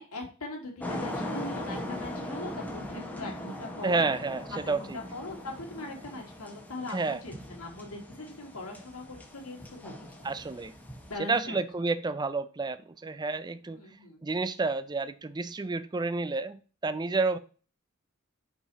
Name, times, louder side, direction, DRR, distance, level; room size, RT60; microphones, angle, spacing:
voice 1, 0.0-4.1 4.5-10.2 11.1-11.6 13.7-14.2, left 2 dB, 80° left, 2.2 m, -41 dB
sound 1, 0.8-11.2, left 1 dB, 10° left, 1.0 m, -40 dB
voice 2, 3.8-5.0 6.9-7.2 10.2-10.7 11.2-13.8 14.2-17.4, right 3 dB, 20° right, 0.4 m, -30 dB
5.5 x 4.9 x 4.1 m
head